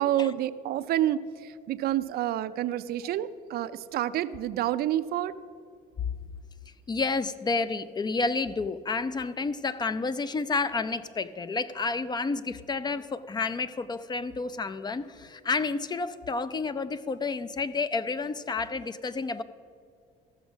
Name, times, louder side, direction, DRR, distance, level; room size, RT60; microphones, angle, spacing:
voice 1, 0.0-5.3, right 12 dB, 65° right, 13 dB, 0.5 m, -28 dB
voice 2, 6.9-19.4, left 4 dB, 25° left, 14 dB, 0.4 m, -30 dB
14.0 x 6.2 x 6.1 m, 2.2 s
cardioid pair, 110°, 17 cm